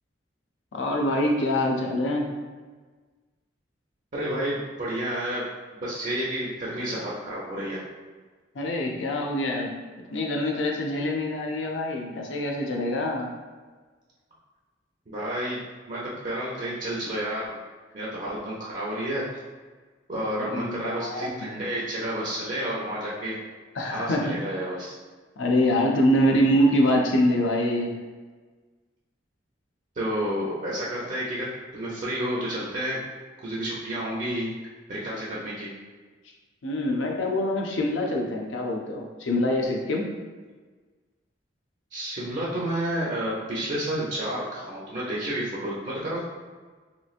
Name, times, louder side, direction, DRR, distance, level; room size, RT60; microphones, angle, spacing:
voice 1, 0.7-2.3 8.5-9.8 10.1-13.3 20.5-21.5 23.8-24.4 25.4-28.0 36.6-40.1, left 1 dB, 85° left, 0 dB, 0.6 m, -25 dB
voice 2, 4.1-5.5 5.8-7.8 15.1-17.6 17.9-19.3 20.1-23.4 23.8-24.9 30.0-33.0 33.4-34.5 34.9-35.7 41.9-46.2, right 1 dB, 40° right, -6 dB, 0.5 m, -30 dB
3.2 x 3.0 x 2.4 m, 1.4 s
head